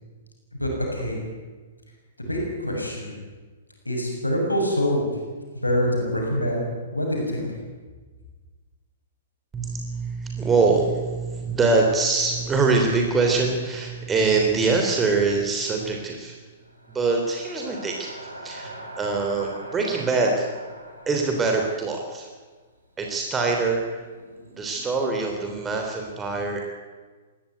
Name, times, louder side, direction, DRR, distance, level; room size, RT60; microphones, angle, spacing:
voice 1, 0.6-1.2 2.2-3.2 3.9-5.1 5.6-6.6 6.9-7.6, equal, 85° left, 0 dB, 7.0 m, -25 dB
voice 2, 9.5-16.4 16.9-18.1 18.4-20.5 21.1-22.3 23.0-24.0 24.6-26.6, right 3 dB, 15° right, 1 dB, 3.3 m, -24 dB
sound 1, 12.9-22.4 22.7-22.8 23.4-25.0, right 1 dB, 80° right, 5.4 m, -44 dB
20.5 x 17.0 x 9.5 m, 1.4 s
figure-of-eight pair, 110°, 0 cm